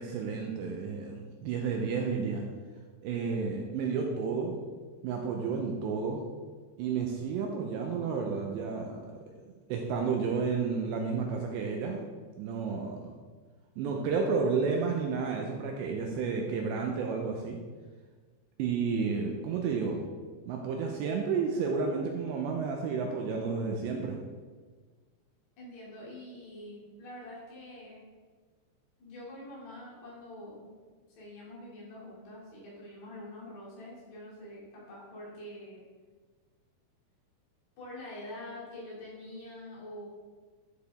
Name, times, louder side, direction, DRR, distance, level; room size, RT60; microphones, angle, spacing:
voice 1, 0.0-2.4 3.0-4.5 5.0-6.2 6.8-9.0 9.7-12.0 12.4-13.1 13.8-17.6 18.6-20.0 20.5-24.2, right 5 dB, 80° right, 1 dB, 2.6 m, -31 dB
voice 2, 25.6-28.0 29.0-30.7 31.1-35.8 37.8-40.1, left 1 dB, 60° left, -6 dB, 4.4 m, -45 dB
11.5 x 6.8 x 3.5 m, 1.4 s
omnidirectional pair, 5.6 m